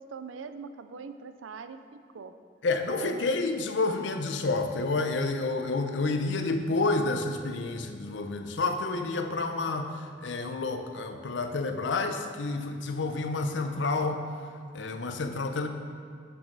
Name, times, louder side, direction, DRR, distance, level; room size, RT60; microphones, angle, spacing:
voice 1, 0.0-2.3 3.0-3.3, right 5 dB, 90° right, 10 dB, 0.5 m, -42 dB
voice 2, 2.6-14.2 14.7-15.7, left 3 dB, 65° left, 6 dB, 0.6 m, -29 dB
6.2 x 6.1 x 6.2 m, 2.1 s
head